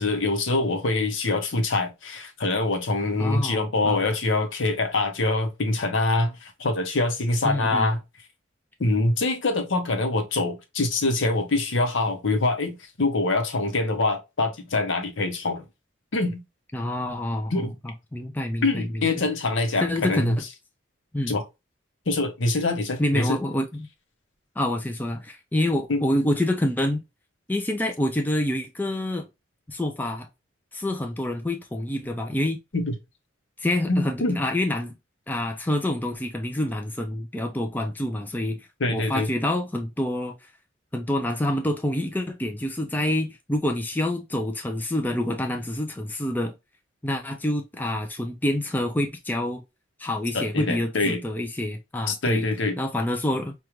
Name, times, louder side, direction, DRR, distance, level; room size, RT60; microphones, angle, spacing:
voice 1, 0.0-8.0 8.8-15.6 16.1-16.4 17.5-17.7 18.6-20.4 21.3-21.4 22.1-23.4 25.9-26.0 32.7-32.9 33.9-34.4 38.8-39.3 50.3-51.2 52.1-52.8, left 2 dB, 75° left, 0.8 m, -24 dB
voice 2, 3.2-4.0 7.4-7.9 16.7-19.0 19.8-20.4 21.1-21.3 23.0-23.9 24.6-27.0 27.5-29.3 29.7-30.3 30.7-32.6 33.6-34.9 35.3-40.5 40.9-46.5 47.0-49.6 50.0-52.5 52.8-53.5, left 1 dB, 10° left, 0.3 m, -27 dB
4.9 x 2.3 x 2.9 m
head